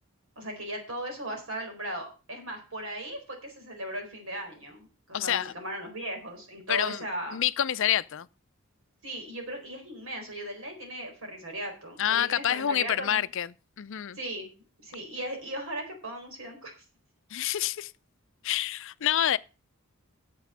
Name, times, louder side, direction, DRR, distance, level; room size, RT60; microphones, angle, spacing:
voice 1, 0.4-7.4 9.0-13.2 14.1-14.5 14.8-16.7, right 1 dB, 70° right, 4.5 m, -37 dB
voice 2, 5.1-5.5 6.7-7.0 7.3-8.3 12.0-13.5 13.8-14.2 17.3-17.9 18.4-19.4, left 11 dB, 65° left, 0.5 m, -27 dB
9.3 x 7.6 x 6.3 m
head